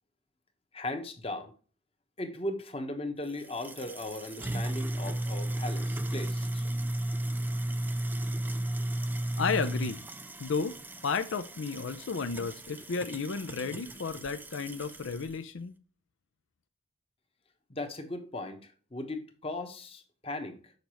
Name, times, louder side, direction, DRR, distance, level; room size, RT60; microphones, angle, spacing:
voice 1, 0.7-1.5 2.2-6.6 17.7-20.7, left 2 dB, 30° left, 1.0 m, -38 dB
sound 1, 3.3-15.3, right 1 dB, 10° right, 0.3 m, -34 dB
voice 2, 9.4-10.0 10.4-10.7 11.0-15.7, left 5 dB, 80° left, 0.5 m, -32 dB
6.6 x 5.3 x 2.9 m
head